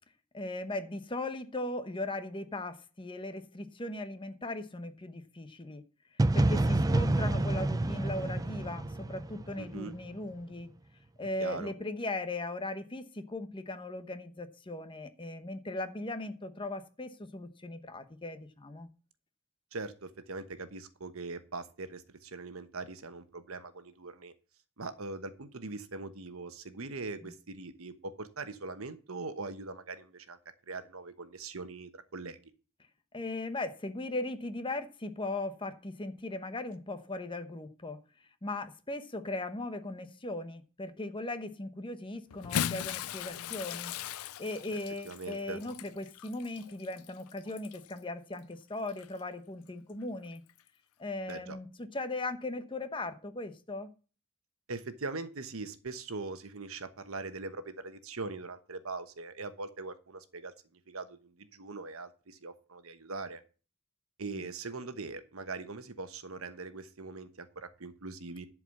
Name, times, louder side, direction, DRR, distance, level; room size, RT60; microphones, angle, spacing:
voice 1, 0.3-5.8 6.3-10.7 11.2-18.9 33.1-38.0 38.4-43.9 44.2-50.4 51.0-53.9 64.3-64.4, left 2 dB, 25° left, 0.9 m, -38 dB
sound 1, 6.2-10.1, right 2 dB, 15° right, 0.4 m, -28 dB
voice 2, 9.6-9.9 11.2-11.7 19.7-24.3 24.8-30.4 30.7-32.4 44.7-45.6 51.3-51.6 54.7-60.5 60.9-63.4 64.2-68.5, right 3 dB, 75° right, 1.1 m, -41 dB
Bathtub (filling or washing) / Splash splatter, 42.3-48.0 48.9-49.1 50.5-50.6, left 9 dB, 90° left, 0.4 m, -38 dB
11.0 x 4.8 x 7.1 m
head